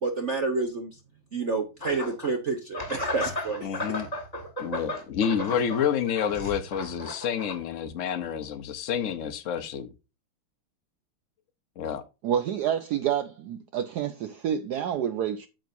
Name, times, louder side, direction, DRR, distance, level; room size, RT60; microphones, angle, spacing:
voice 1, 0.0-0.9 1.3-3.8, right 3 dB, 55° right, 0.8 m, -29 dB
sound 1, 1.8-2.3 2.7-7.6, left 1 dB, 20° left, 1.8 m, -34 dB
voice 2, 3.6-4.1 4.6-9.9 11.8-12.0, left 8 dB, 70° left, 0.7 m, -29 dB
voice 3, 12.2-15.5, right 9 dB, 80° right, 0.9 m, -28 dB
8.9 x 7.6 x 2.6 m
omnidirectional pair, 2.4 m